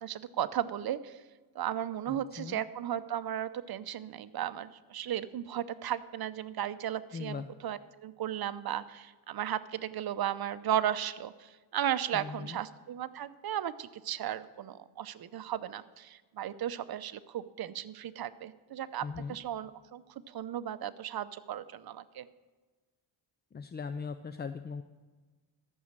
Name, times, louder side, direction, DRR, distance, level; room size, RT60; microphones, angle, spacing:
voice 1, 0.0-1.2 1.5-19.0 19.3-20.0 20.3-22.3, right 10 dB, 50° right, 13 dB, 0.7 m, -35 dB
voice 2, 2.1-2.6 7.1-7.5 12.1-12.6 19.0-19.4 23.5-24.8, left 5 dB, 25° left, 11 dB, 0.4 m, -39 dB
13.5 x 6.4 x 7.3 m, 1.3 s
cardioid pair, 100°, 46 cm